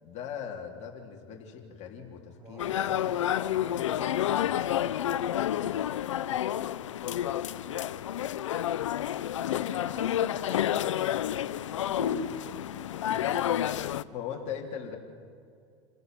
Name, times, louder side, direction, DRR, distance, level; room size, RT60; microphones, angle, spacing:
voice 1, 0.0-3.1 3.5-4.4 8.1-8.6 9.0-9.9 12.0-12.4 13.1-13.3 14.1-15.0, left 7 dB, 50° left, 0 dB, 3.5 m, -40 dB
voice 2, 2.4-6.9 9.8-10.9 11.2-12.0 12.9-13.5 14.0-14.4, right 2 dB, 25° right, 1 dB, 7.4 m, -51 dB
sound 1, 2.6-14.0, left 11 dB, 90° left, 0.6 m, -29 dB
27.5 x 17.5 x 7.8 m, 2.3 s
hypercardioid pair, 100°, 15 cm